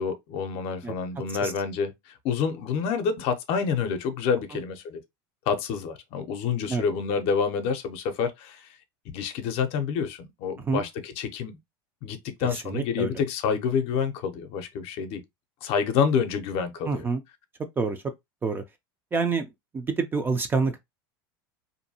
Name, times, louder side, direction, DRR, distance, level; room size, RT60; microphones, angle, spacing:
voice 1, 0.0-5.0 5.5-8.8 9.1-11.6 12.0-15.2 15.6-17.0, left 6 dB, 50° left, 0.6 m, -28 dB
voice 2, 12.4-13.1 16.9-17.2 17.8-18.0 18.4-18.6 19.1-19.5 19.7-20.8, right 4 dB, 15° right, 0.4 m, -27 dB
2.6 x 2.2 x 2.7 m
supercardioid pair, 125°, 12 cm